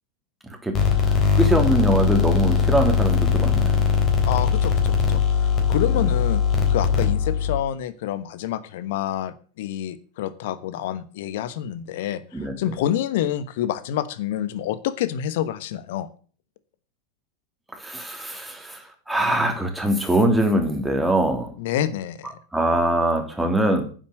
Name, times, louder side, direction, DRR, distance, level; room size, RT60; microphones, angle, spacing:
sound 1, 0.7-7.6, left 7 dB, 30° left, 3.7 m, -20 dB
voice 1, 1.0-3.8 5.9-6.0 12.3-12.5 17.7-21.5 22.5-23.8, right 1 dB, 5° right, 4 dB, 3.0 m, -23 dB
voice 2, 4.2-6.4 6.7-16.1 21.6-22.3, left 11 dB, 55° left, 15 dB, 1.1 m, -28 dB
10.0 x 7.8 x 7.9 m, 0.41 s
figure-of-eight pair, 90°, 0 cm